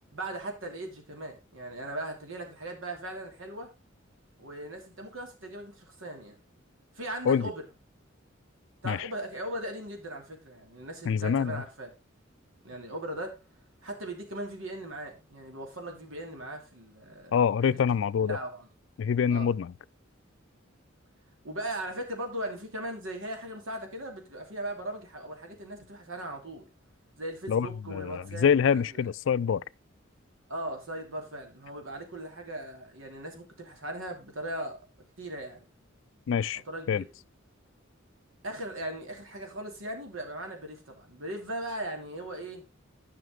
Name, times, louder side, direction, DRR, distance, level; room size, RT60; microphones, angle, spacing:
voice 1, 0.1-3.7 4.4-6.4 6.9-7.6 8.8-11.9 12.6-13.4 13.8-17.4 18.2-18.7 19.3-19.5 21.4-26.7 27.2-29.1 30.5-34.8 35.2-35.6 36.7-37.1 38.4-42.6, right 1 dB, 80° right, 2.7 m, -38 dB
voice 2, 11.1-11.6 17.3-18.4 19.0-19.7 27.5-29.6 36.3-36.6 36.9-37.0, left 7 dB, 65° left, 0.3 m, -25 dB
11.0 x 5.9 x 3.7 m
head